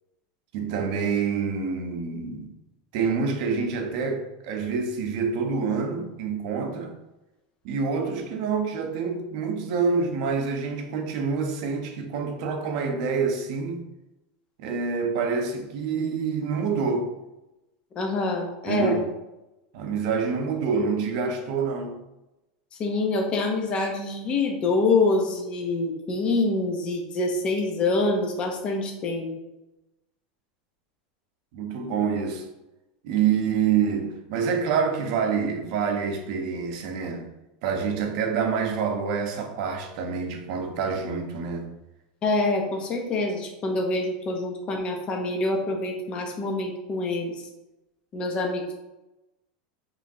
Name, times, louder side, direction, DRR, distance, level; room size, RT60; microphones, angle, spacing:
voice 1, 0.5-2.5 2.9-7.0 7.6-13.9 14.6-17.1 18.7-19.1 19.7-22.0 31.5-32.5 33.0-37.3 37.6-41.7, right 5 dB, 55° right, 0.6 m, -27 dB
voice 2, 17.9-19.0 22.8-29.3 42.2-47.3 48.1-48.7, left 3 dB, 25° left, 0.6 m, -26 dB
5.0 x 3.2 x 2.6 m
supercardioid pair, 165°, 4 cm